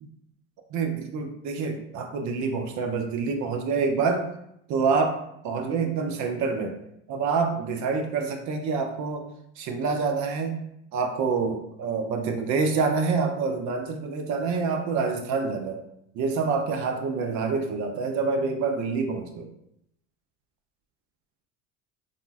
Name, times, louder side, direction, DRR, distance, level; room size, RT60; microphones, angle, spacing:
voice 1, 0.7-4.3 4.7-6.8 7.1-9.3 9.6-10.6 10.9-15.8 16.1-19.5, right 4 dB, 50° right, 5 dB, 0.5 m, -27 dB
3.6 x 2.0 x 2.3 m, 0.77 s
supercardioid pair, 90°, 39 cm